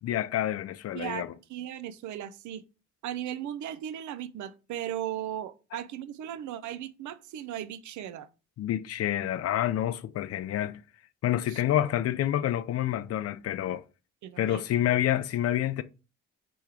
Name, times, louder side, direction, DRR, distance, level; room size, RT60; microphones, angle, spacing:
voice 1, 0.0-1.3 5.7-5.8 8.6-10.8 11.2-13.8 14.4-15.8, left 12 dB, 55° left, 0.4 m, -28 dB
voice 2, 0.9-2.6 3.0-8.3 11.5-11.6 14.2-14.6, right 11 dB, 70° right, 0.5 m, -37 dB
3.5 x 3.0 x 4.7 m
cardioid pair, 90°, 30 cm